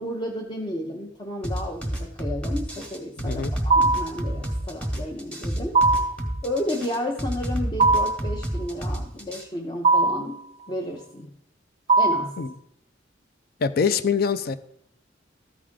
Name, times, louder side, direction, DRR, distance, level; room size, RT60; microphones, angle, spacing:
voice 1, 0.0-5.8 6.4-10.4 10.7-11.3 12.0-12.4, left 1 dB, 25° left, -1 dB, 0.7 m, -32 dB
sound 1, 1.4-9.4, right 1 dB, 5° left, 1.2 m, -29 dB
voice 2, 3.2-3.5 12.4-12.5 13.6-14.6, left 6 dB, 55° left, 13 dB, 0.4 m, -24 dB
sound 2, 3.7-4.2 5.7-6.2 7.8-8.3 9.8-10.3 11.9-12.4, right 3 dB, 35° right, 0.4 m, -19 dB
13.5 x 5.0 x 3.7 m, 0.74 s
head